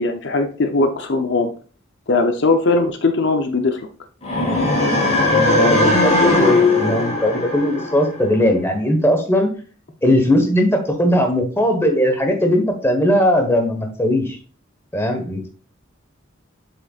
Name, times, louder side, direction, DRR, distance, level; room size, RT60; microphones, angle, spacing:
voice 1, 0.0-1.5 2.1-3.8, left 3 dB, 60° left, 5 dB, 0.7 m, -19 dB
sound 1, 4.2-8.3, left 2 dB, 35° left, 2.4 m, -18 dB
voice 2, 5.3-9.5 10.0-14.4 14.9-15.5, left 1 dB, 10° left, 4 dB, 1.3 m, -18 dB
7.6 x 6.7 x 2.4 m, 0.39 s
head